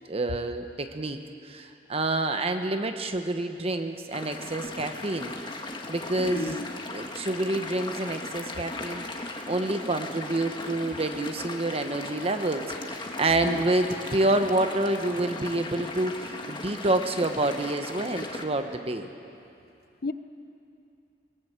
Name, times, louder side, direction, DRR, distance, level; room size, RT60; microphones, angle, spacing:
voice 1, 0.0-5.3 5.9-6.6 6.9-19.1, right 2 dB, 35° right, 7 dB, 1.0 m, -28 dB
sound 1, 4.1-18.5, left 2 dB, 30° left, 1.7 m, -38 dB
voice 2, 6.2-6.7 13.4-13.6 20.0-20.1, left 2 dB, 60° left, 11 dB, 0.9 m, -33 dB
22.0 x 19.5 x 8.0 m, 2.7 s
head